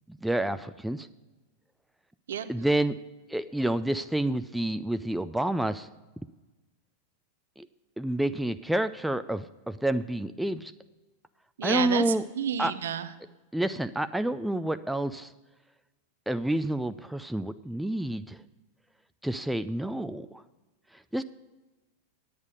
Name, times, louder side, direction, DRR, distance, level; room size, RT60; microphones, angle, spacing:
voice 1, 0.2-1.1 2.5-3.0 3.3-5.9 7.6-7.7 8.0-10.7 11.6-12.2 12.6-12.7 13.5-15.3 16.3-18.4 19.2-20.4 21.1-21.2, right 1 dB, 5° right, 11 dB, 0.3 m, -29 dB
voice 2, 11.6-13.1, right 8 dB, 65° right, 12 dB, 0.7 m, -30 dB
9.5 x 8.6 x 6.4 m, 1.2 s
figure-of-eight pair, 90°, 0 cm